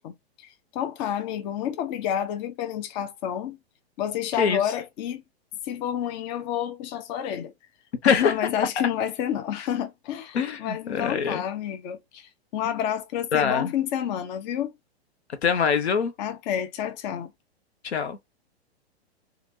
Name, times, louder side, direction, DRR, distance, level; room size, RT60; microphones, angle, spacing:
voice 1, 0.0-3.6 4.0-5.2 5.6-7.5 8.0-14.7 16.2-17.3, left 10 dB, 45° left, 0.7 m, -29 dB
voice 2, 10.3-11.4 13.3-13.7 15.4-16.1 17.8-18.2, left 6 dB, 85° left, 0.9 m, -24 dB
3.1 x 2.4 x 2.6 m
hypercardioid pair, 120°, 32 cm